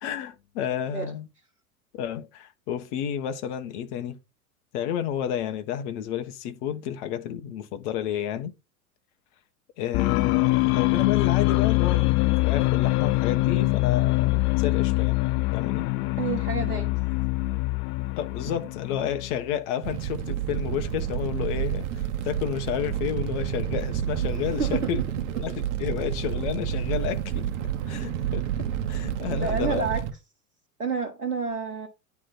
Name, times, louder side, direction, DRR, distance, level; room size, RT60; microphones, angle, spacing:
voice 1, 0.0-1.3 1.9-4.2 4.7-8.5 9.8-15.2 15.5-15.9 18.2-25.0 25.4-27.5 27.9-29.9, left 9 dB, 50° left, 1.3 m, -31 dB
sound 1, 9.9-19.5, left 21 dB, 30° left, 0.4 m, -24 dB
voice 2, 16.2-16.9 24.6-24.9 29.3-30.0 30.8-31.9, right 5 dB, 90° right, 1.2 m, -29 dB
Fire, 19.8-30.1, right 10 dB, 55° right, 1.2 m, -29 dB
9.8 x 3.5 x 4.3 m
figure-of-eight pair, 90°, 44 cm